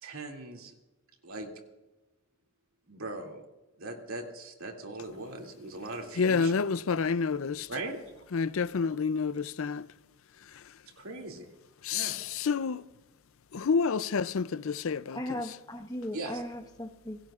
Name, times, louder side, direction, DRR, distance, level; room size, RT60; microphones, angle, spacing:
voice 1, 0.0-0.7 1.2-1.5 2.9-3.5 3.8-6.6 7.7-8.2 11.0-11.5 11.9-12.2 16.1-16.4, right 2 dB, 75° right, 2.6 m, -40 dB
voice 2, 6.2-7.7 8.3-9.9 10.5-10.6 11.8-12.8 13.5-15.4, left 5 dB, 70° left, 0.5 m, -29 dB
voice 3, 15.1-17.2, left 1 dB, 15° left, 1.2 m, -37 dB
27.5 x 17.0 x 2.5 m
head